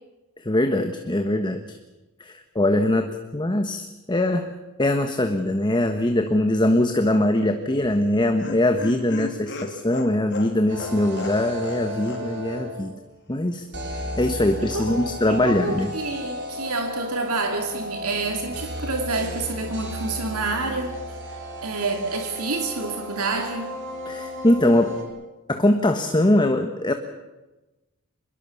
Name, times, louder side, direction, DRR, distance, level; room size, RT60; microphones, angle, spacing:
voice 1, 0.4-1.8 2.2-4.5 4.8-12.9 13.3-13.7 14.2-15.9 24.1-24.9 25.5-26.9, left 1 dB, 20° left, 6 dB, 1.2 m, -22 dB
Laughter, 7.8-11.8 12.1-12.2 12.5-12.6, left 2 dB, 55° left, 3.1 m, -35 dB
sound 1, 10.7-13.0 13.7-25.0, equal, 55° right, 5.9 m, -34 dB
voice 2, 15.3-21.0 21.6-23.7, right 3 dB, 75° right, 4 dB, 2.7 m, -28 dB
25.0 x 22.0 x 7.1 m, 1.1 s
head